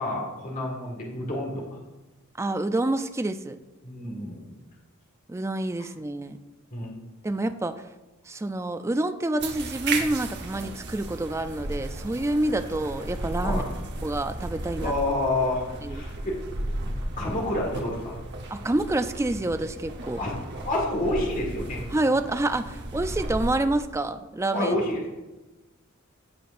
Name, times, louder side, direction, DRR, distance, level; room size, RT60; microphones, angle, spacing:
voice 1, 0.0-1.8 3.8-4.5 6.7-6.9 13.4-13.6 14.8-15.6 15.9-16.4 16.8-18.2 20.2-20.4 20.7-21.8 24.5-25.0, left 1 dB, 40° left, -2 dB, 1.7 m, -29 dB
voice 2, 2.4-3.6 5.3-6.4 7.2-7.8 8.3-13.6 14.0-14.9 15.8-16.0 18.5-20.2 21.9-24.8, right 2 dB, 15° right, 9 dB, 0.3 m, -27 dB
sound 1, 9.4-23.6, right 2 dB, 55° right, 1.0 m, -35 dB
14.5 x 5.9 x 2.5 m, 1.1 s
head